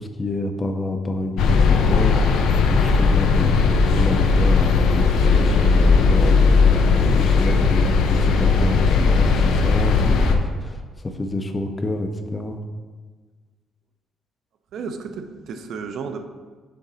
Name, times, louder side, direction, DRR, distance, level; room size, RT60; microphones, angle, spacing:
voice 1, 0.0-3.6 3.8-6.6 7.0-12.6, left 1 dB, 20° left, 6 dB, 0.5 m, -28 dB
sound 1, 1.4-10.4, left 4 dB, 80° left, 0.5 m, -17 dB
voice 2, 14.7-16.3, right 5 dB, 60° right, 7 dB, 0.5 m, -32 dB
6.8 x 3.7 x 4.1 m, 1.4 s
cardioid pair, 140°, 0 cm